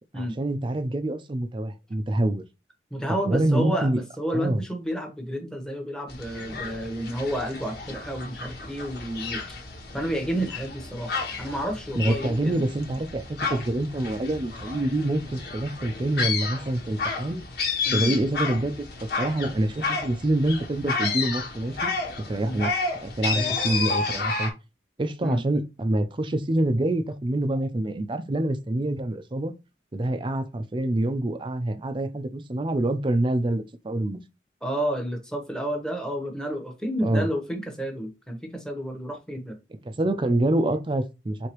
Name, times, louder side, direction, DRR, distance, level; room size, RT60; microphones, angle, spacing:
voice 1, 0.2-2.4 3.3-4.0 4.3-4.6 12.0-17.4 17.9-18.9 19.2-21.9 22.3-22.7 23.0-24.5 25.0-29.6 29.9-34.2 37.0-37.3 40.0-41.5, right 1 dB, 30° right, 0.5 m, -26 dB
voice 2, 2.9-9.4 9.9-12.6 17.9-18.1 22.4-22.6 23.3-23.6 25.2-25.4 34.6-39.6, equal, 5° left, 1.0 m, -30 dB
sound 1, 6.1-24.5, left 4 dB, 65° left, 1.4 m, -31 dB
4.8 x 3.4 x 3.0 m
head